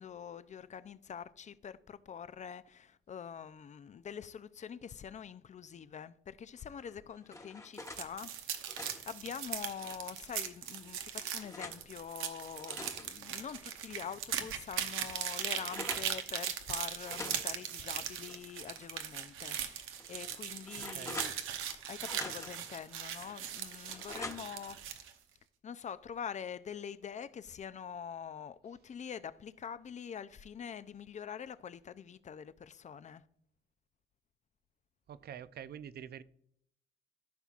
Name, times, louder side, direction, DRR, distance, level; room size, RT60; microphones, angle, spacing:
voice 1, 0.0-8.7 9.1-21.3 21.9-24.8 25.6-33.2, left 7 dB, 35° left, 0.5 m, -45 dB
sound 1, 6.8-8.1 8.5-10.1 10.7-11.8 12.4-14.1 14.5-14.6 14.9-16.1 17.0-18.9 19.2-19.3 19.9-21.7 22.0-22.7 23.2-24.7, left 2 dB, 15° left, 1.0 m, -48 dB
sound 2, 7.7-25.1, right 9 dB, 90° right, 0.9 m, -39 dB
voice 2, 20.8-21.2 35.1-36.2, right 9 dB, 55° right, 0.5 m, -46 dB
14.0 x 5.7 x 2.4 m
cardioid pair, 90°, 20 cm